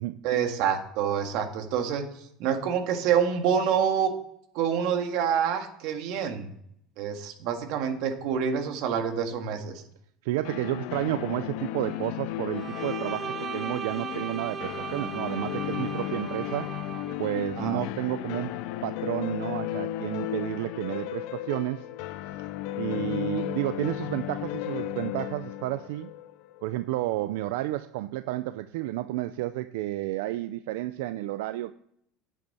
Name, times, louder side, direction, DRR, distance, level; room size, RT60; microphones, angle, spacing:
voice 1, 0.2-4.1 4.5-6.5 7.0-9.8 17.6-17.8, right 7 dB, 60° right, 5 dB, 1.8 m, -27 dB
voice 2, 10.2-16.7 17.2-21.9 22.4-22.5 22.8-26.1 26.6-31.7, right 16 dB, 90° right, 12 dB, 0.4 m, -31 dB
sound 1, 10.4-27.2, left 14 dB, 65° left, 0.5 m, -34 dB
Bowed string instrument, 12.5-17.2, right 7 dB, 25° right, 0.5 m, -37 dB
10.5 x 8.3 x 4.2 m, 0.70 s
cardioid pair, 160°, 0 cm